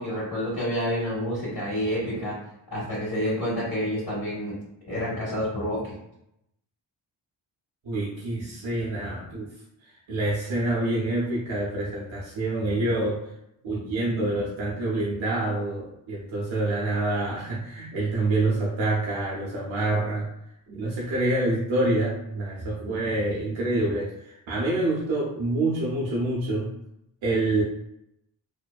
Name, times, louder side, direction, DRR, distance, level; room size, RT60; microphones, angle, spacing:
voice 1, 0.0-2.4 2.7-4.6 4.8-5.9, equal, 55° left, -8 dB, 1.1 m, -28 dB
voice 2, 7.8-9.5 9.8-13.2 13.6-20.3 20.7-26.7 27.2-27.6, right 2 dB, 80° right, -5 dB, 0.7 m, -27 dB
2.6 x 2.1 x 2.2 m, 0.80 s
cardioid pair, 40°, 46 cm